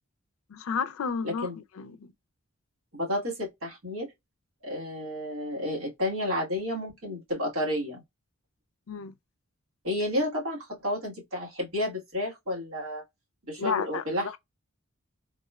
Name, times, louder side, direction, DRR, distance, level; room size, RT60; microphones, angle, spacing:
voice 1, 0.5-1.5 1.8-2.1 8.9-9.1 13.6-14.4, left 5 dB, 75° left, 0.4 m, -32 dB
voice 2, 1.2-1.6 2.9-4.1 4.6-8.0 9.8-13.0 13.5-14.3, left 1 dB, 80° right, 1.5 m, -31 dB
3.5 x 2.1 x 2.3 m
head